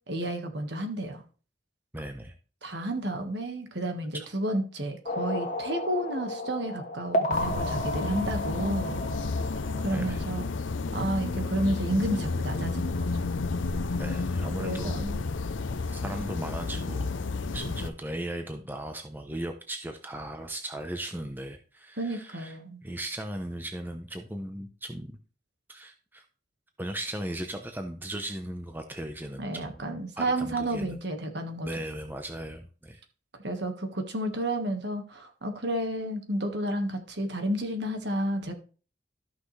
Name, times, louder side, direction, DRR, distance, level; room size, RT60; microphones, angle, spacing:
voice 1, 0.1-1.2 2.6-9.0 9.8-10.4 10.9-13.2 14.6-15.2 22.0-22.8 29.4-31.7 33.4-38.5, right 1 dB, 60° right, 5 dB, 1.6 m, -31 dB
voice 2, 1.9-2.3 4.1-4.3 9.9-10.2 14.0-15.0 15.9-17.1 17.5-22.6 22.8-25.2 25.7-26.2 26.8-29.8 30.2-31.0 31.6-33.0, right 1 dB, 10° right, 5 dB, 0.8 m, -37 dB
sound 1, 5.1-10.4, equal, 40° left, 1.6 m, -33 dB
sound 2, 7.3-17.9, left 3 dB, 80° left, 0.7 m, -31 dB
13.5 x 6.0 x 3.3 m, 0.37 s
head